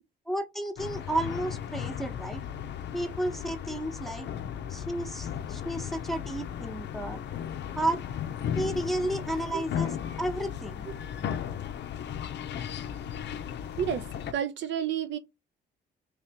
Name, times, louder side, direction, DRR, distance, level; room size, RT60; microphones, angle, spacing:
voice 1, 0.3-2.4 2.9-4.3 4.7-7.2 7.8-8.0 8.5-9.9 10.2-10.9, right 1 dB, ahead, 0.8 m, -32 dB
sound 1, 0.8-14.3, left 9 dB, 60° left, 0.5 m, -36 dB
voice 2, 9.0-9.6 10.9-11.0 13.8-14.0 14.3-15.2, right 9 dB, 65° right, 0.5 m, -31 dB
3.0 x 2.8 x 3.4 m
cardioid pair, 90°, 20 cm